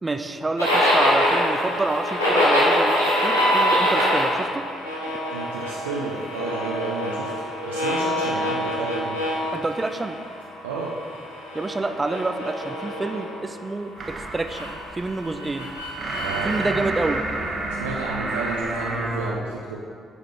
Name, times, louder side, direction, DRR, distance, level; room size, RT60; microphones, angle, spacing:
voice 1, 0.0-4.7 9.5-10.2 11.5-15.7 16.4-17.2, right 3 dB, 25° right, 8 dB, 0.4 m, -28 dB
sound 1, 0.6-10.4 10.7-13.2 14.5-16.7, equal, 90° left, 0.9 m, -24 dB
voice 2, 5.3-9.2 10.6-10.9 16.2-16.7 17.7-19.8, right 4 dB, 80° right, -4 dB, 0.5 m, -32 dB
sound 2, 14.0-19.3, right 2 dB, 45° right, 1.0 m, -30 dB
7.9 x 4.8 x 3.4 m, 2.2 s
figure-of-eight pair, 45°, 0 cm